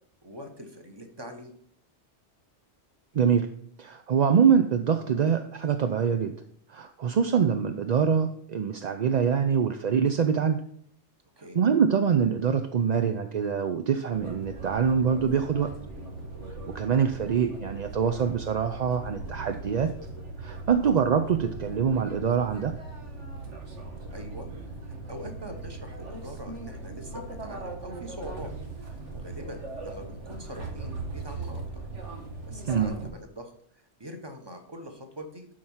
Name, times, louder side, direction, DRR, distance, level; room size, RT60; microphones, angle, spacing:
voice 1, 0.2-1.5 11.4-11.6 20.8-21.0 24.1-24.5 24.8-28.5 29.1-31.8 32.5-35.5, equal, 20° right, 5 dB, 1.3 m, -43 dB
voice 2, 3.1-3.5 3.8-6.3 6.7-10.6 11.5-15.7 16.6-19.9 20.4-22.7 32.7-32.9, right 7 dB, 50° right, 7 dB, 0.5 m, -24 dB
sound 1, 14.1-33.1, right 3 dB, 85° right, 1.8 m, -39 dB
12.0 x 4.6 x 5.6 m, 0.64 s
omnidirectional pair, 1.2 m